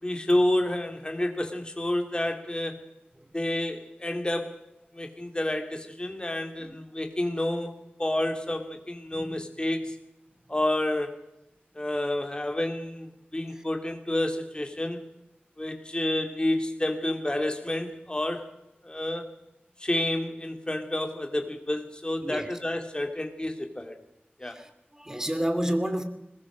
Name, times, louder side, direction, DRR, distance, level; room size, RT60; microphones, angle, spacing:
voice 1, 0.0-2.8 3.3-4.6 4.9-7.7 8.0-10.0 10.5-11.2 11.7-15.0 15.6-18.5 18.8-19.3 19.8-24.0 24.4-24.6, left 1 dB, 25° left, 6 dB, 3.1 m, -29 dB
voice 2, 9.1-9.4 13.5-13.6 22.2-22.5 24.4-26.0, right 1 dB, 15° right, 9 dB, 2.7 m, -31 dB
21.5 x 21.0 x 6.4 m, 0.87 s
wide cardioid pair, 70°, 4 cm